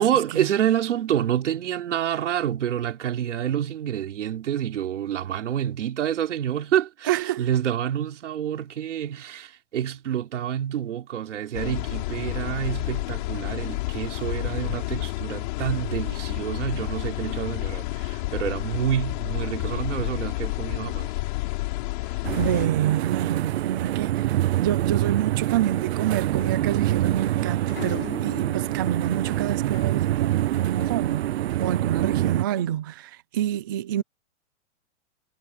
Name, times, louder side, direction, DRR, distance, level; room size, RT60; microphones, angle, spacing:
voice 1, 0.0-21.1, right 10 dB, 80° right, 3.5 m, -28 dB
voice 2, 7.1-7.5 22.0-31.3 31.6-34.0, right 11 dB, 20° right, 0.4 m, -28 dB
sound 1, 11.5-22.7, left 21 dB, 40° left, 6.3 m, -30 dB
sound 2, 22.2-32.4, right 14 dB, 60° right, 0.6 m, -25 dB
sound 3, 26.4-30.1 30.4-31.6, left 12 dB, 60° left, 5.3 m, -42 dB
hypercardioid pair, 165°, 36 cm